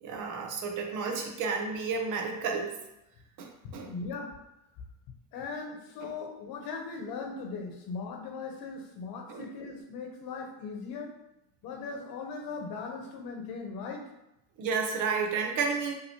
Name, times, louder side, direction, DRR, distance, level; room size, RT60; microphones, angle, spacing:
voice 1, 0.0-2.7 3.4-3.9 6.0-6.1 9.3-9.5 14.6-15.9, right 5 dB, 50° right, 2 dB, 0.9 m, -31 dB
voice 2, 3.8-4.3 5.3-11.2 11.6-14.1, left 4 dB, 60° left, 3 dB, 1.1 m, -39 dB
5.6 x 2.9 x 3.0 m, 0.89 s
cardioid pair, 125°, 40 cm